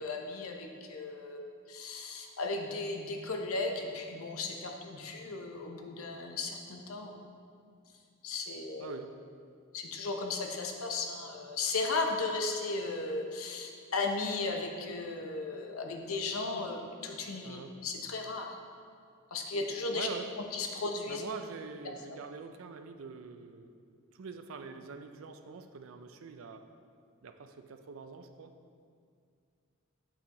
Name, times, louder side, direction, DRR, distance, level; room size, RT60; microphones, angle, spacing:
voice 1, 0.0-7.2 8.2-8.9 9.7-18.6 19.3-20.1 20.5-21.2, left 3 dB, 85° left, 3 dB, 0.7 m, -36 dB
voice 2, 8.8-9.2 17.4-17.7 19.9-20.3 21.1-26.7 27.2-28.6, right 5 dB, 70° right, 8 dB, 0.4 m, -44 dB
8.0 x 5.8 x 3.0 m, 2.3 s
head